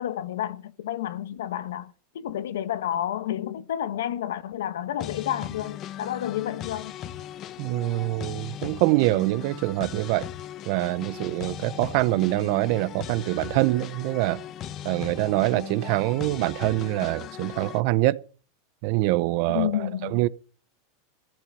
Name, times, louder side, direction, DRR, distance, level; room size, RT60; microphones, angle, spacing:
voice 1, 0.0-6.9 19.5-20.2, left 11 dB, 90° left, 1.2 m, -30 dB
sound 1, 5.0-17.8, left 10 dB, 35° left, 0.9 m, -38 dB
voice 2, 7.6-10.3 10.7-14.4 14.8-18.2 18.8-20.3, right 19 dB, 55° right, 0.7 m, -25 dB
15.0 x 6.0 x 10.0 m
supercardioid pair, 135°, 0 cm